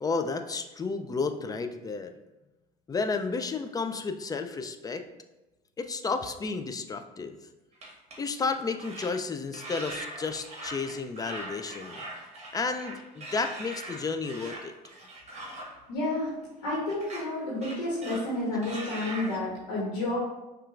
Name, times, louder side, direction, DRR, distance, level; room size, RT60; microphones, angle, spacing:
voice 1, 0.0-2.1 2.9-5.1 5.8-7.4 8.2-12.0 12.5-14.7, left 4 dB, 20° left, 7 dB, 0.3 m, -32 dB
sound 1, 7.7-8.5 8.8-9.1 9.5-15.7 16.9-17.3 17.6-18.4 18.6-19.4, right 1 dB, 35° right, 1.2 m, -41 dB
voice 2, 15.9-16.3 16.6-20.2, left 2 dB, 80° left, -5 dB, 1.1 m, -30 dB
5.6 x 2.4 x 2.4 m, 1.0 s
hypercardioid pair, 70°, 20 cm